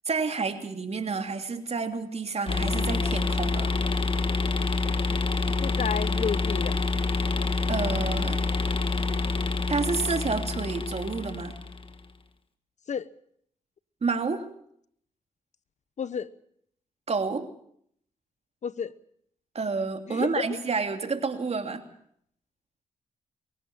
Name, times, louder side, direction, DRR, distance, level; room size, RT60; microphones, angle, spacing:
voice 1, 0.1-3.7 7.7-8.4 9.7-11.5 14.0-14.4 17.1-17.5 19.5-21.8, right 4 dB, 45° right, 5 dB, 3.0 m, -29 dB
sound 1, 2.5-11.9, left 3 dB, 40° left, 1.8 m, -27 dB
voice 2, 5.6-6.8 12.9-13.1 16.0-16.3 18.6-18.9 20.1-20.6, left 7 dB, 55° left, 17 dB, 0.9 m, -31 dB
23.5 x 17.0 x 7.3 m, 0.68 s
supercardioid pair, 50°, 15 cm